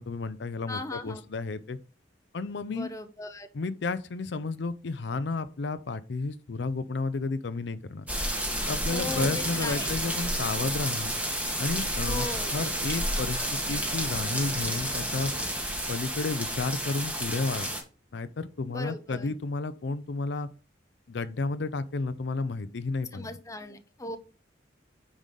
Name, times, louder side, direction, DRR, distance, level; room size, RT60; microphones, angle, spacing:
voice 1, 0.0-1.8 2.3-2.9 3.5-8.1 8.7-11.1 11.6-13.4 13.7-15.3 15.9-17.7 18.1-20.5 21.1-23.3, left 3 dB, 65° left, 12 dB, 0.5 m, -32 dB
voice 2, 0.7-1.2 2.7-3.5 8.9-9.9 12.1-12.5 18.7-19.3 23.1-24.2, left 2 dB, 15° left, 8 dB, 0.7 m, -38 dB
sound 1, 8.1-17.8, right 1 dB, 10° right, 1.5 m, -30 dB
9.0 x 4.9 x 3.8 m, 0.36 s
head